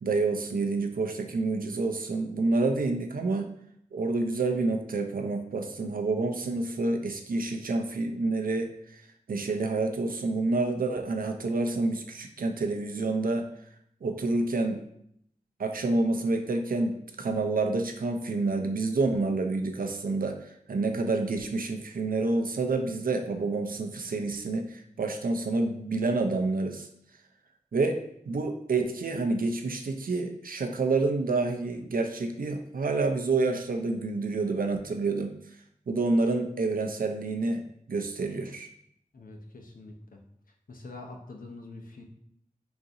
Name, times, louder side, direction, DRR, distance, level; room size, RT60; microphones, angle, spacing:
voice 1, 0.0-3.5 3.9-9.0 9.3-13.5 14.0-14.8 15.6-26.9 27.7-35.4 35.9-37.6 37.9-38.7, right 3 dB, 80° right, 4 dB, 0.6 m, -28 dB
voice 2, 39.1-40.2 40.7-42.0, left 2 dB, 75° left, 2 dB, 0.8 m, -45 dB
4.0 x 2.6 x 4.7 m, 0.71 s
cardioid pair, 45°, 15 cm